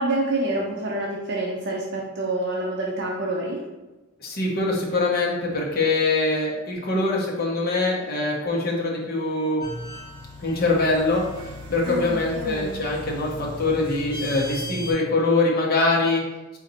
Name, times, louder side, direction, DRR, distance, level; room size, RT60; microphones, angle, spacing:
voice 1, 0.0-3.6 11.8-12.8, right 2 dB, 55° right, -2 dB, 0.5 m, -27 dB
voice 2, 4.2-9.6 10.4-16.2, left 2 dB, 50° left, -4 dB, 0.9 m, -23 dB
sound 1, 9.6-14.9, equal, 20° right, 1.4 m, -37 dB
3.9 x 2.5 x 4.1 m, 1.1 s
head